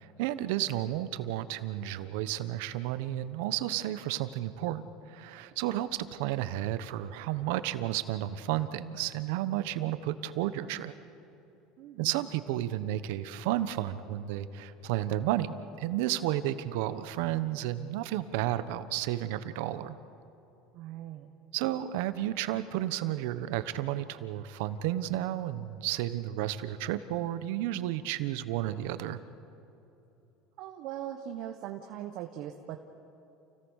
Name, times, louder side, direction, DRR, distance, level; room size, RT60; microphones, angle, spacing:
voice 1, 0.0-10.9 12.0-20.0 21.5-29.2, right 13 dB, 80° right, 12 dB, 1.1 m, -32 dB
voice 2, 11.8-12.3 20.7-21.3 30.6-32.8, right 11 dB, 60° right, 4 dB, 1.3 m, -40 dB
29.5 x 17.0 x 6.5 m, 3.0 s
supercardioid pair, 120°, 0 cm